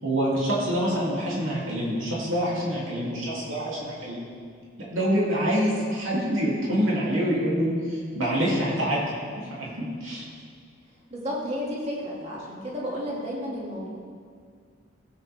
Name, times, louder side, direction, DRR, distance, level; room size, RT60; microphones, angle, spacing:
voice 1, 0.0-4.2 4.9-10.2, equal, 85° right, -6 dB, 3.1 m, -26 dB
voice 2, 11.1-13.9, equal, 35° right, -5 dB, 2.5 m, -32 dB
16.0 x 8.5 x 3.6 m, 2.1 s
head